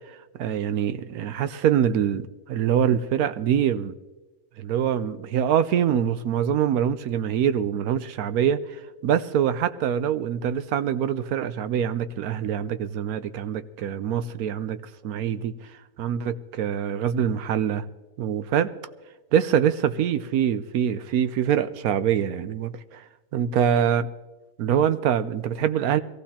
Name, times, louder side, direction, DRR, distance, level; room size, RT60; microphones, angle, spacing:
voice 1, 0.1-3.9 4.6-14.8 15.0-15.5 16.0-17.9 18.2-18.7 19.3-23.0 23.3-24.1 24.6-26.0, right 9 dB, 75° right, 12 dB, 1.1 m, -24 dB
23.0 x 15.0 x 2.9 m, 1.1 s
omnidirectional pair, 1.6 m